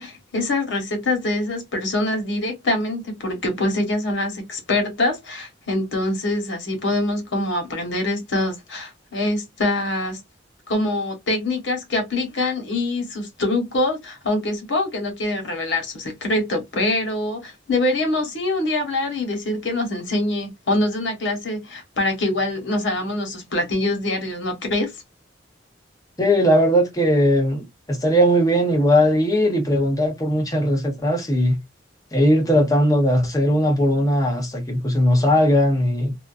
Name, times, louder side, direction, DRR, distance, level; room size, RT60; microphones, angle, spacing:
voice 1, 0.0-10.2 10.7-24.9, left 2 dB, 75° left, 1.2 m, -24 dB
voice 2, 26.2-31.6 32.1-36.1, equal, 20° left, 0.7 m, -19 dB
2.7 x 2.3 x 2.4 m
head